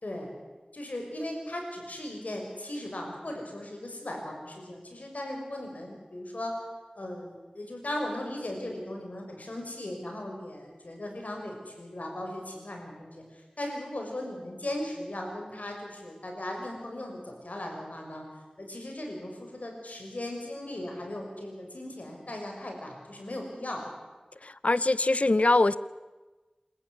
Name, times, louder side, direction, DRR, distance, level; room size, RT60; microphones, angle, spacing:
voice 1, 0.7-6.6 7.0-18.2 18.6-23.8, left 1 dB, 80° left, 1 dB, 6.5 m, -37 dB
voice 2, 24.4-25.8, left 2 dB, 60° left, 18 dB, 0.8 m, -23 dB
27.5 x 14.5 x 9.9 m, 1.2 s
wide cardioid pair, 40°, 3 cm